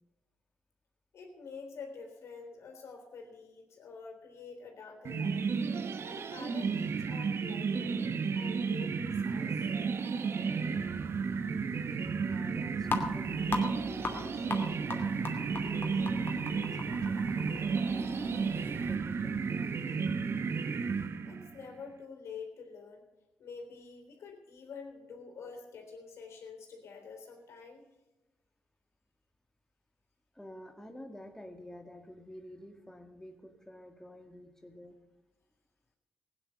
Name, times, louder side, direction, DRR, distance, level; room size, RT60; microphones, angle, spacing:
voice 1, 1.1-5.6 6.0-8.0 8.3-9.7 21.2-23.1 23.4-27.9, left 5 dB, 70° left, 3 dB, 3.5 m, -47 dB
sound 1, 5.0-21.6, right 5 dB, 60° right, 1.0 m, -33 dB
voice 2, 12.0-16.3 16.8-19.8 30.3-35.0, left 1 dB, 10° left, 4 dB, 1.9 m, -50 dB
sound 2, 12.8-19.0, left 3 dB, 45° left, 2.6 m, -39 dB
16.0 x 9.8 x 6.8 m, 1.1 s
supercardioid pair, 50°, 5 cm